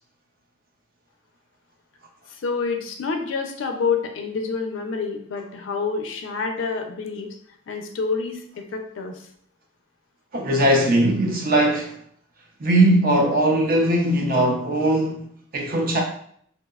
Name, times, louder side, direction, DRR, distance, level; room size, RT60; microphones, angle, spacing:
voice 1, 2.3-7.3 7.7-8.4 8.7-9.2, left 5 dB, 85° left, 0.4 m, -27 dB
voice 2, 10.3-11.9 12.6-15.3 15.5-16.0, right 1 dB, 50° right, 0.5 m, -19 dB
2.7 x 2.0 x 2.3 m
head